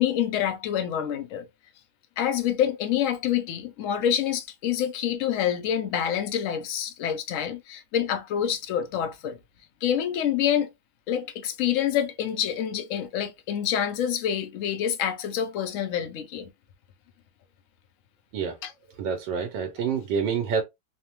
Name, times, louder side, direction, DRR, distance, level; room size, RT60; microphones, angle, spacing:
voice 1, 0.0-1.5 2.2-9.4 9.8-10.7 11.1-16.5 18.6-18.7, left 9 dB, 75° left, 0.7 m, -27 dB
voice 2, 19.0-20.6, right 6 dB, 80° right, 1.3 m, -27 dB
3.2 x 2.1 x 2.8 m
omnidirectional pair, 1.9 m